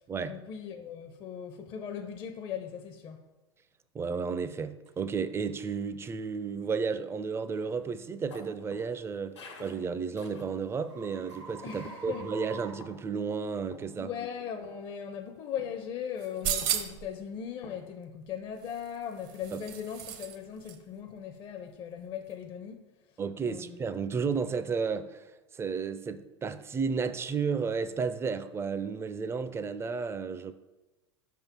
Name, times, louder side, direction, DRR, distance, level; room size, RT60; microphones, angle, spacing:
voice 1, 0.0-3.2 11.6-12.3 14.0-22.8 23.4-23.8, left 8 dB, 35° left, 0.5 m, -39 dB
voice 2, 3.9-14.1 19.5-19.6 23.2-30.5, right 5 dB, 15° right, 0.4 m, -33 dB
sound 1, 4.9-5.0 5.5-5.7 6.3-6.5 9.2-13.7, right 5 dB, 75° right, 1.3 m, -48 dB
sound 2, 7.5-10.9 11.3-12.0 12.5-13.2 13.7-14.4 14.6-14.9 15.6-16.0 16.6-17.2 17.6-17.9, left 3 dB, 85° left, 1.2 m, -51 dB
sound 3, 16.2-17.1 18.6-20.4 20.6-20.8, right 10 dB, 60° right, 0.7 m, -34 dB
5.3 x 3.6 x 5.8 m
hypercardioid pair, 90°, 14 cm